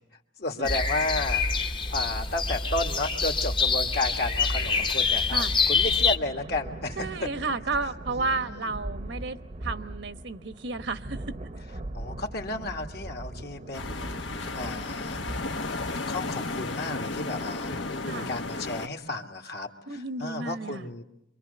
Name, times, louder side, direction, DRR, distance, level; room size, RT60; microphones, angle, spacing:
voice 1, 0.4-7.1 8.2-8.7 11.9-15.4 16.1-21.0, left 2 dB, 60° left, 4 dB, 1.9 m, -33 dB
sound 1, 0.6-6.2, left 4 dB, 25° left, 0.9 m, -26 dB
sound 2, 4.3-16.5, right 1 dB, 40° right, 0.8 m, -41 dB
voice 2, 7.0-11.4 18.0-18.3 19.9-20.9, right 3 dB, 70° right, 10 dB, 1.1 m, -32 dB
sound 3, 13.7-18.9, left 3 dB, 90° left, 1.3 m, -33 dB
26.5 x 23.5 x 6.7 m, 0.83 s
head